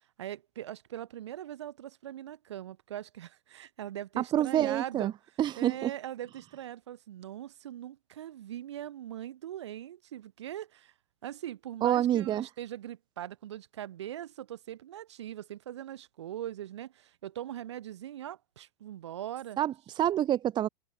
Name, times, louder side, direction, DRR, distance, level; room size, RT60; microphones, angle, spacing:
voice 1, 0.2-5.1 5.6-10.9 11.2-19.6, right 11 dB, 75° right, 4.4 m, -41 dB
voice 2, 4.2-5.1 5.4-5.9 11.8-12.5 19.6-20.7, right 11 dB, 30° right, 0.8 m, -27 dB
hypercardioid pair, 100°, 15 cm